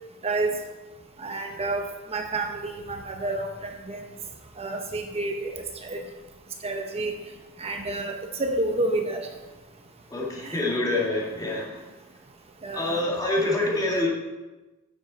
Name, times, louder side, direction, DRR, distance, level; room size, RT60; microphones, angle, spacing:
voice 1, 1.2-3.5 3.9-4.0 4.6-6.0 6.6-7.1 7.6-8.1 8.4-9.2 10.4-10.6 12.6-13.0, right 2 dB, 30° right, 4 dB, 0.9 m, -29 dB
voice 2, 10.1-11.8 12.7-14.1, left 2 dB, 20° left, -3 dB, 2.0 m, -26 dB
8.9 x 7.4 x 4.1 m, 1.1 s
head